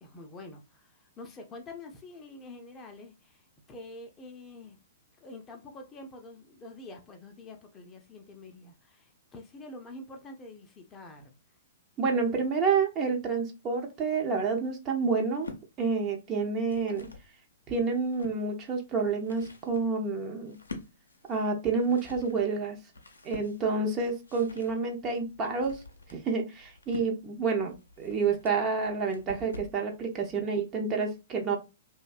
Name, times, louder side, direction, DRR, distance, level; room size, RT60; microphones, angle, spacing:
voice 1, 0.0-4.8 5.2-11.3, left 2 dB, 20° left, 0.5 m, -47 dB
voice 2, 12.0-15.5 15.8-17.1 17.7-20.6 21.3-22.9 23.2-31.6, right 4 dB, 25° right, 0.6 m, -29 dB
sound 1, 15.2-15.7 16.4-17.3 17.8-18.4 19.0-29.8, left 3 dB, 80° left, 0.5 m, -47 dB
2.6 x 2.1 x 2.3 m
figure-of-eight pair, 115°, 0 cm